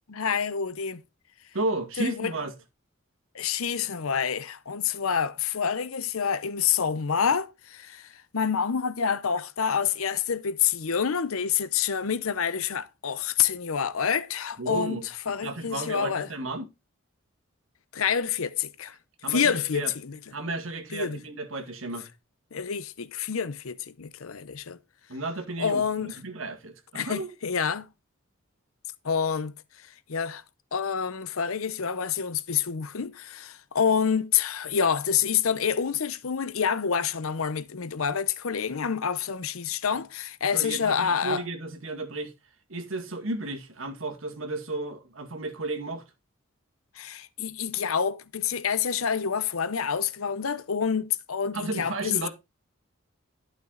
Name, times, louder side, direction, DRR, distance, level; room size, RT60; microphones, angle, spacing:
voice 1, 0.1-1.0 2.0-2.3 3.3-16.3 17.9-19.0 19.3-20.2 20.9-21.2 22.5-24.8 25.6-26.2 26.9-27.9 29.0-30.4 30.7-41.4 47.0-52.3, left 7 dB, 85° left, 0.7 m, -27 dB
voice 2, 1.5-2.5 14.6-15.0 15.4-16.6 19.2-19.9 20.3-22.1 25.1-27.3 40.5-42.3 42.7-46.0 51.5-52.3, right 2 dB, 75° right, 2.1 m, -33 dB
11.5 x 6.1 x 3.8 m
head